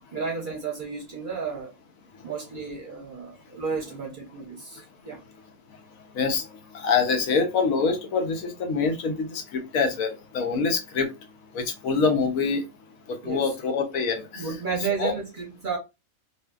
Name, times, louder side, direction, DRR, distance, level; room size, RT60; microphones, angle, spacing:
voice 1, 0.1-1.7 2.2-5.2 13.2-13.5 14.3-15.8, right 5 dB, 50° right, 0.7 m, -32 dB
voice 2, 6.7-11.1 11.5-12.6 13.3-14.4 15.0-15.1, left 5 dB, 85° left, 1.2 m, -25 dB
2.6 x 2.6 x 2.2 m
omnidirectional pair, 1.4 m